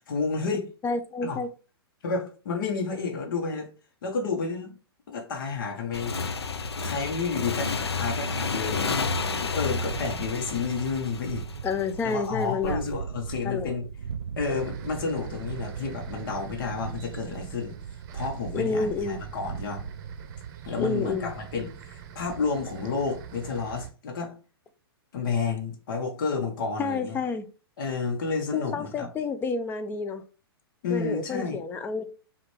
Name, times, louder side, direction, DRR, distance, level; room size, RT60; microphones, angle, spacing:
voice 1, 0.0-0.7 1.2-1.4 2.0-3.7 4.0-4.8 5.1-6.2 6.8-9.0 9.4-11.4 12.0-13.8 14.4-17.8 18.1-19.9 20.6-24.4 25.1-27.1 27.8-29.1 30.8-31.6, left 4 dB, 55° left, 1.1 m, -30 dB
voice 2, 0.8-1.5 11.6-12.8 13.4-13.7 18.5-19.2 20.8-21.3 26.8-27.5 28.5-30.2 30.9-32.1, left 4 dB, 15° left, 0.4 m, -29 dB
Motorcycle / Engine, 5.9-12.3, left 4 dB, 90° left, 0.5 m, -31 dB
sound 1, 9.9-20.5, right 6 dB, 90° right, 0.4 m, -39 dB
sound 2, 14.4-23.9, right 9 dB, 45° right, 0.7 m, -43 dB
4.9 x 2.5 x 3.3 m
hypercardioid pair, 120°, 13 cm